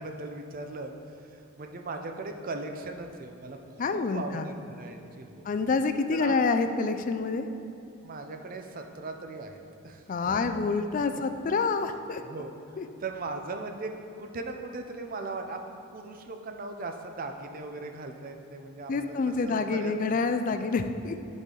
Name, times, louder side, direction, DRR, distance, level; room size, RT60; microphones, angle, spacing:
voice 1, 0.0-5.5 6.1-6.3 8.0-10.4 11.1-11.2 12.2-12.6 13.0-13.9 14.2-19.9 20.4-20.5, right 3 dB, 40° right, 5 dB, 0.5 m, -39 dB
voice 2, 3.8-4.5 5.4-7.5 10.1-12.2 12.8-12.9 18.9-21.2, left 4 dB, 40° left, 8 dB, 0.3 m, -27 dB
9.9 x 4.2 x 3.8 m, 2.7 s
head